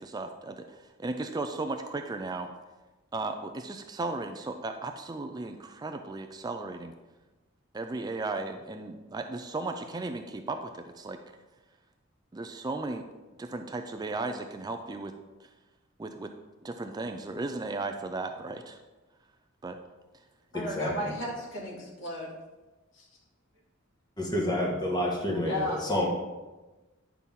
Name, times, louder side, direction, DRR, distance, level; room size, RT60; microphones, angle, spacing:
voice 1, 0.0-2.5 3.1-6.9 7.7-11.2 12.3-13.0 13.4-15.1 15.4-15.5 16.0-16.3 16.6-18.8 19.6-19.8, right 3 dB, 20° right, 6 dB, 0.4 m, -35 dB
voice 2, 20.5-22.3 22.9-23.1 25.5-25.8, left 1 dB, 65° left, -3 dB, 2.3 m, -34 dB
voice 3, 24.2-26.1, left 1 dB, 20° left, -3 dB, 1.6 m, -28 dB
9.8 x 6.0 x 3.6 m, 1.2 s
head